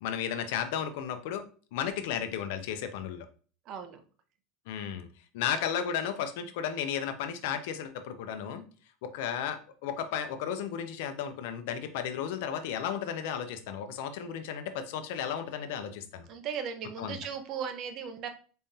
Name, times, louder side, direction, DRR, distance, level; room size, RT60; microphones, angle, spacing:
voice 1, 0.0-1.4 1.7-3.3 4.7-5.1 5.3-8.6 9.0-16.3 17.0-17.2, left 8 dB, 75° left, 8 dB, 0.6 m, -34 dB
voice 2, 3.7-4.0 16.3-18.3, right 7 dB, 45° right, 8 dB, 0.7 m, -37 dB
4.3 x 3.7 x 2.7 m, 0.39 s
supercardioid pair, 145°, 0 cm